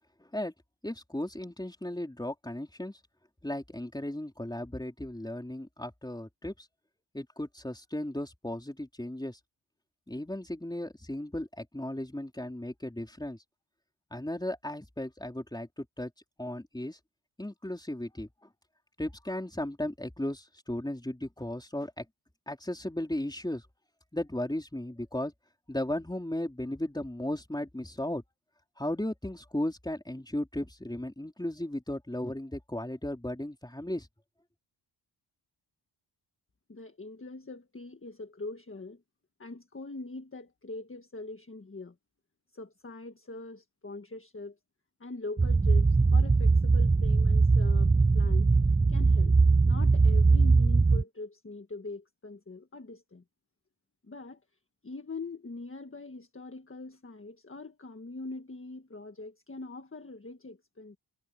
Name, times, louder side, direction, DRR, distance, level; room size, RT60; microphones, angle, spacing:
voice 1, 0.2-0.5 0.8-3.0 3.4-6.7 7.1-9.4 10.1-13.4 14.1-16.1 16.4-17.0 17.4-18.5 19.0-22.1 22.5-23.7 24.1-25.3 25.7-28.2 28.8-34.1, left 1 dB, 10° left, 3.8 m, -36 dB
voice 2, 36.7-39.0 39.4-41.9 42.5-44.6 45.0-48.5 48.9-49.4 49.7-53.2 54.0-54.4 54.8-61.0, left 3 dB, 25° left, 1.6 m, -43 dB
sound 1, 45.4-51.0, right 4 dB, 15° right, 0.3 m, -21 dB
wide cardioid pair, 80°, 46 cm